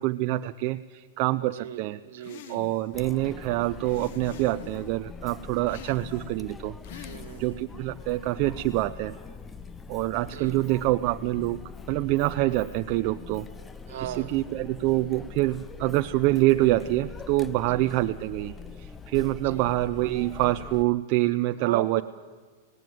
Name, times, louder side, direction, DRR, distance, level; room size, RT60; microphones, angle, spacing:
voice 1, 0.0-2.0 2.5-7.1 7.4-9.1 9.9-11.6 11.9-13.5 14.0-22.0, right 18 dB, 45° right, 8 dB, 0.5 m, -26 dB
voice 2, 1.4-2.7 7.0-7.7 10.2-10.6 13.9-14.4 17.6-17.9 19.4-19.7 21.6-22.0, right 11 dB, 70° right, 12 dB, 1.7 m, -38 dB
sound 1, 2.2-3.0 3.8-4.9 5.7-6.4 6.8-7.6, left 10 dB, 60° left, 1.0 m, -46 dB
Chatter, 2.9-20.8, left 5 dB, 15° left, 0.6 m, -43 dB
18.5 x 17.5 x 9.4 m, 1.4 s
supercardioid pair, 145°, 0 cm